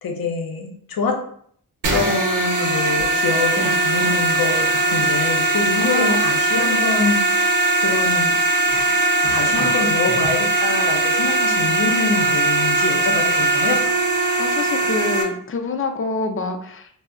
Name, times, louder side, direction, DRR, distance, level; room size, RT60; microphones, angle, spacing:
voice 1, 0.0-1.2 1.9-7.2 7.8-8.3 9.3-13.8, left 4 dB, 85° left, 3 dB, 0.6 m, -25 dB
sound 1, 1.8-15.2, right 3 dB, 65° right, 0.7 m, -19 dB
voice 2, 5.8-6.2 14.4-16.9, left 4 dB, 35° left, 5 dB, 0.4 m, -26 dB
2.1 x 2.0 x 3.6 m, 0.62 s
cardioid pair, 50°, 35 cm